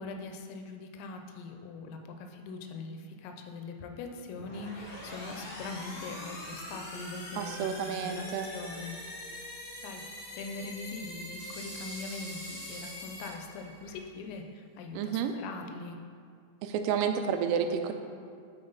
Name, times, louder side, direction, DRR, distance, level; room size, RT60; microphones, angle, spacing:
voice 1, 0.0-9.0 9.7-10.0 10.4-16.0, left 3 dB, 90° left, 4 dB, 3.4 m, -42 dB
sound 1, 4.3-14.0, left 1 dB, 45° left, 2.4 m, -44 dB
sound 2, 4.8-14.0, right 1 dB, 70° right, 1.4 m, -52 dB
voice 2, 7.4-8.5 14.9-15.3 16.6-17.9, right 7 dB, 90° right, 6 dB, 3.2 m, -30 dB
11.5 x 4.3 x 4.0 m, 2.3 s
omnidirectional pair, 5.8 m